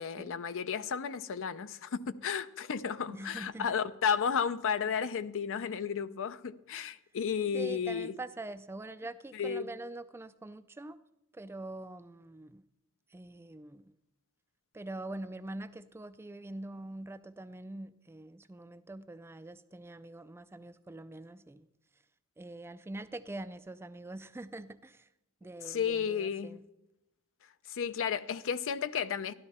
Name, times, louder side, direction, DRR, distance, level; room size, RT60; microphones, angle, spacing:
voice 1, 0.0-8.1 9.3-9.7 25.6-26.6 27.7-29.3, left 7 dB, 60° left, 0.5 m, -33 dB
voice 2, 3.1-3.8 7.5-11.0 11.3-12.6 13.1-13.9 14.7-21.7 22.4-25.1 25.4-26.6, right 2 dB, 10° right, 0.3 m, -44 dB
12.5 x 12.0 x 4.2 m
head